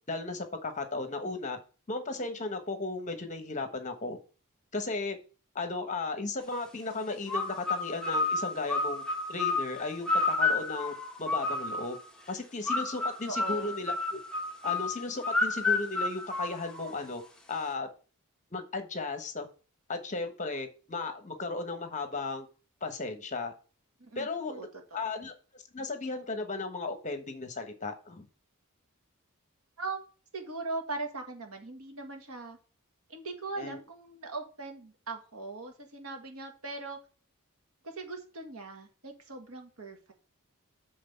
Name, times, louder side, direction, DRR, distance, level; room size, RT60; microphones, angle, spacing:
voice 1, 0.1-1.6 1.9-4.2 4.7-5.2 5.5-9.0 9.3-10.9 11.2-12.0 12.3-14.2 14.6-17.2 17.5-17.9 18.5-19.5 19.9-22.5 22.8-23.5 24.2-24.7 24.9-28.2 33.6-33.8, left 3 dB, 35° left, 6 dB, 1.2 m, -35 dB
sound 1, 7.3-12.0 12.7-17.1, left 3 dB, 5° left, 1.0 m, -31 dB
voice 2, 13.3-13.7 24.0-25.1 29.8-30.0 30.3-32.6 33.1-37.0 37.8-40.1, right 3 dB, 75° right, 4 dB, 1.8 m, -40 dB
7.8 x 3.9 x 6.6 m, 0.36 s
head